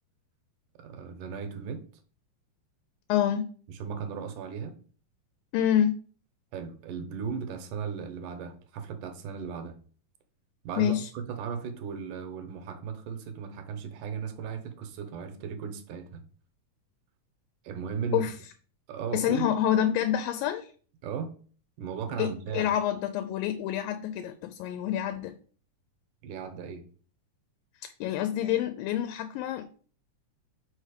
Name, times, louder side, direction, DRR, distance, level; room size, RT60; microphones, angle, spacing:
voice 1, 0.8-1.8 3.7-4.8 6.5-9.8 10.6-16.2 17.6-18.3 18.9-19.5 21.0-21.3 21.8-22.7 26.2-26.8, right 6 dB, 80° right, 2.1 m, -36 dB
voice 2, 3.1-3.5 5.5-6.0 10.8-11.1 18.1-18.3 19.1-20.7 22.2-25.3 27.8-29.7, left 10 dB, 85° left, 2.3 m, -27 dB
5.1 x 4.3 x 4.9 m
omnidirectional pair, 4.0 m